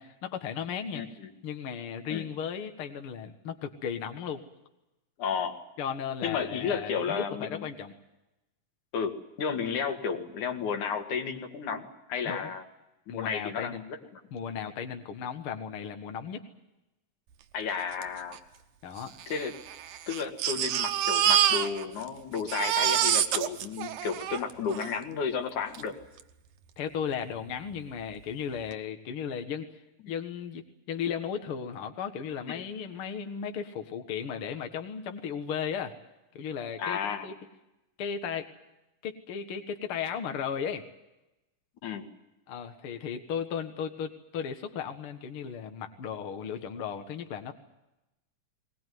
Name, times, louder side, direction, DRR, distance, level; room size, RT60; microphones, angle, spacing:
voice 1, 0.0-1.2 1.4-4.4 5.8-7.9 12.2-12.5 13.1-13.8 14.3-16.4 18.8-19.2 26.8-29.7 30.1-36.0 36.3-37.4 38.0-38.5 39.0-40.9 42.5-47.5, left 7 dB, 50° left, 6 dB, 2.1 m, -35 dB
voice 2, 0.9-1.3 2.1-2.3 5.2-5.6 6.2-7.7 8.9-12.6 13.1-14.2 17.5-18.4 19.3-19.5 20.1-25.9 32.5-32.6 36.8-37.3 41.8-42.1, left 6 dB, 75° left, 5 dB, 3.3 m, -32 dB
Crying sobbing, 18.0-18.1 18.3-18.4 19.2-22.1 22.3-24.9 25.7-25.8 26.2-26.3, right 10 dB, 85° right, 2.6 m, -27 dB
20.5 x 20.0 x 9.4 m, 0.94 s
omnidirectional pair, 3.5 m